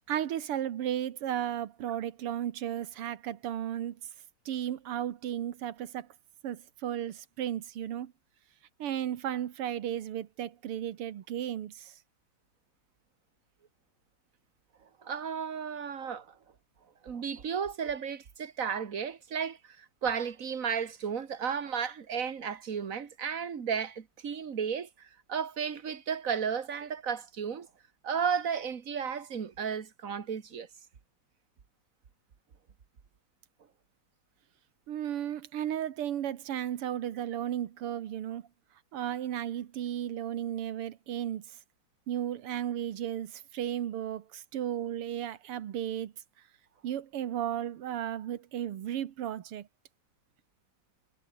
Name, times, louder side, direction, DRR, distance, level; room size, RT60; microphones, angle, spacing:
voice 1, 0.1-4.0 4.5-6.1 6.4-8.1 8.8-11.9 34.9-38.4 38.9-41.5 42.1-46.1 46.8-49.7, right 10 dB, 85° right, 2.2 m, -34 dB
voice 2, 15.0-16.4 17.0-27.7 28.0-30.7, right 7 dB, 40° right, 1.8 m, -34 dB
omnidirectional pair, 2.4 m